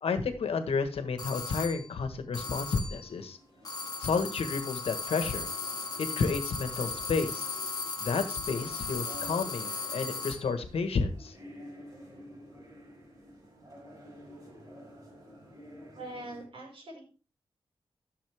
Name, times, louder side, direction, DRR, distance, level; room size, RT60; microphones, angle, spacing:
voice 1, 0.0-3.4 4.0-5.5 6.0-7.5 8.0-11.3, left 4 dB, 85° left, 9 dB, 1.4 m, -31 dB
sound 1, 1.2-1.9 2.3-3.1 3.6-10.5, left 4 dB, 40° left, 1.8 m, -37 dB
sound 2, 2.3-16.5, equal, 35° right, 6.3 m, -51 dB
voice 2, 16.0-17.0, right 1 dB, 65° right, 1 dB, 5.2 m, -43 dB
14.0 x 6.9 x 3.5 m, 0.35 s
wide cardioid pair, 90°, 10 cm